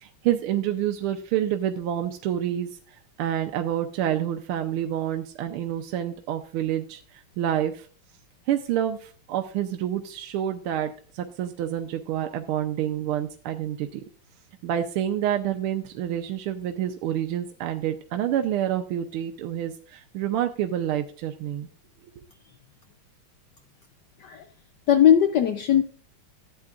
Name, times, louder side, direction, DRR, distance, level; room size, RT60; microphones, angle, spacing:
voice 1, 0.0-2.8 3.2-7.9 8.5-14.0 14.6-21.7, right 11 dB, 85° right, 5 dB, 1.6 m, -28 dB
voice 2, 24.9-25.8, left 10 dB, 75° left, 9 dB, 1.0 m, -18 dB
13.0 x 8.6 x 2.4 m, 0.42 s
omnidirectional pair, 2.4 m